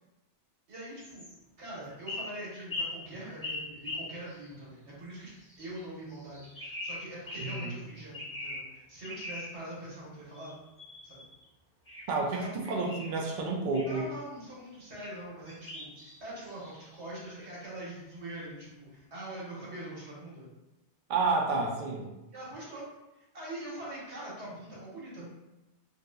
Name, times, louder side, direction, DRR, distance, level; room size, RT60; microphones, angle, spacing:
voice 1, 0.7-1.2 1.6-5.3 5.6-10.5 11.0-11.3 12.3-12.5 13.9-20.5 22.3-22.8 23.2-25.3, right 1 dB, 75° right, -6 dB, 1.4 m, -43 dB
sound 1, 1.0-1.4 1.9-4.6 5.3-5.8 6.1-7.8 8.1-8.7 9.0-9.6 10.3-11.4 11.9-13.1 13.7-14.1 15.0-15.1 15.5-17.0, left 2 dB, 15° left, 0.9 m, -41 dB
voice 2, 7.4-7.7 12.1-14.1 21.1-22.1, right 3 dB, 60° right, 0 dB, 0.5 m, -30 dB
3.7 x 2.7 x 2.2 m, 0.98 s
omnidirectional pair, 1.1 m